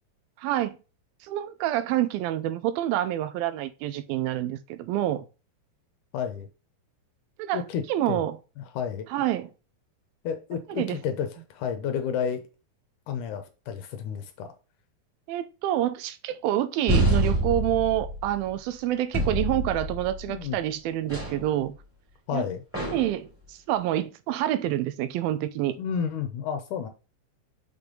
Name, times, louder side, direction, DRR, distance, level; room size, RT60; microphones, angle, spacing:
voice 1, 0.4-0.8 1.2-5.3 7.4-7.6 7.9-8.4 9.1-9.5 10.8-11.0 15.3-21.8 22.3-22.4 22.9-25.8, right 13 dB, 85° right, 2.5 m, -27 dB
voice 2, 6.1-6.5 7.5-8.3 8.6-9.1 10.2-12.4 13.1-14.5 20.3-20.6 22.3-22.6 25.8-26.9, left 7 dB, 70° left, 2.1 m, -31 dB
sound 1, 16.9-18.5 19.1-20.4 21.1-21.5 22.7-23.2, right 1 dB, 5° right, 2.5 m, -26 dB
6.2 x 5.3 x 3.8 m
omnidirectional pair, 4.2 m